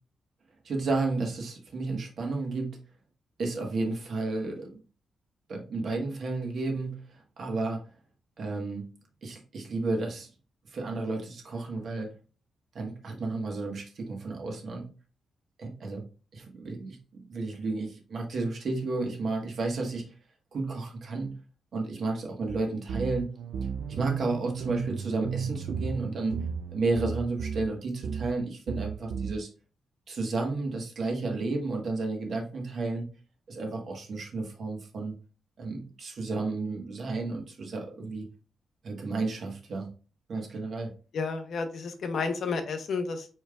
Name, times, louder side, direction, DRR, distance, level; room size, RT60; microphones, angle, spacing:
voice 1, 0.6-2.8 3.4-4.8 5.5-7.8 8.4-8.9 9.2-10.3 10.6-12.1 12.7-14.9 15.6-16.1 16.3-17.0 17.3-20.1 20.5-21.4 21.7-23.3 23.9-26.4 26.7-29.5 30.1-33.1 33.5-35.2 35.6-38.3 38.8-39.9 40.3-40.9, right 3 dB, 50° right, 1.3 m, -32 dB
sound 1, 22.5-22.6 22.9-27.7 28.0-28.4 28.7-29.3, right 6 dB, 85° right, 0.4 m, -34 dB
voice 2, 41.1-43.3, left 4 dB, 55° left, 0.8 m, -31 dB
5.0 x 4.4 x 2.3 m
wide cardioid pair, 170°, 0 cm